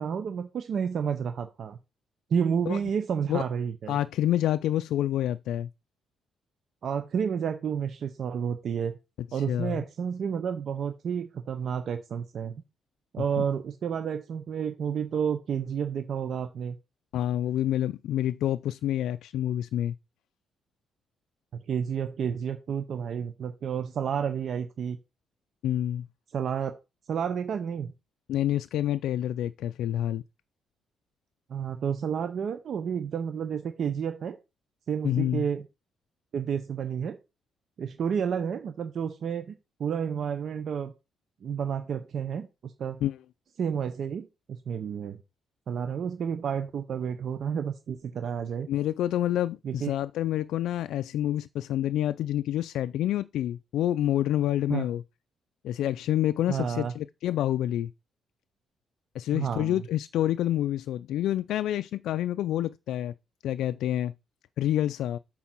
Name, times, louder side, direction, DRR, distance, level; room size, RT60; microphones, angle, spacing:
voice 1, 0.0-1.8 2.3-4.0 6.8-9.0 9.3-12.6 13.1-16.8 21.7-25.0 26.3-26.7 27.1-27.9 31.5-34.4 34.9-35.6 36.3-37.2 37.8-39.5 39.8-40.9 41.4-43.0 43.6-45.2 45.7-48.7 49.6-49.9 54.7-54.9 56.5-56.9 59.3-59.8, right 7 dB, 50° right, 0.6 m, -30 dB
voice 2, 3.9-5.7 9.3-9.8 13.4-13.5 17.1-19.9 25.6-26.1 28.3-30.2 35.0-35.5 43.0-43.2 48.7-55.0 55.6-57.9 59.1-63.1 63.4-64.1 64.6-65.2, left 12 dB, 85° left, 0.3 m, -28 dB
8.4 x 3.8 x 6.0 m
cardioid pair, 155°, 0 cm